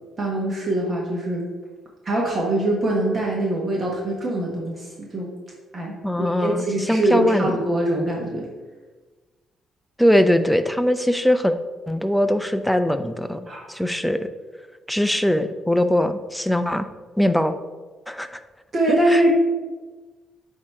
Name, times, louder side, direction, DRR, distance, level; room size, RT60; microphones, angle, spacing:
voice 1, 0.2-1.5 2.0-5.3 5.7-8.5 13.5-13.7 18.7-19.3, right 1 dB, 35° right, -2 dB, 1.2 m, -23 dB
voice 2, 6.0-7.5 10.0-11.5 11.9-14.3 14.9-16.9 17.2-17.5 18.1-18.4 19.1-19.3, left 1 dB, ahead, 9 dB, 0.5 m, -21 dB
8.3 x 2.9 x 4.6 m, 1.3 s
cardioid pair, 90°, 0 cm